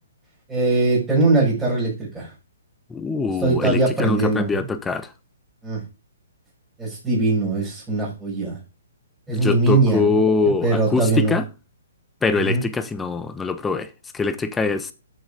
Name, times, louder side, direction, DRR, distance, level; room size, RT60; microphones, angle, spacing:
voice 1, 0.5-2.3 3.4-4.6 5.6-5.8 6.8-8.6 9.3-10.2 10.4-11.4 12.3-12.6, right 3 dB, 10° right, 6.7 m, -21 dB
voice 2, 2.9-5.1 9.3-11.4 12.2-13.9 14.1-14.9, left 4 dB, 10° left, 1.1 m, -23 dB
9.3 x 8.0 x 5.2 m
hypercardioid pair, 150°, 0 cm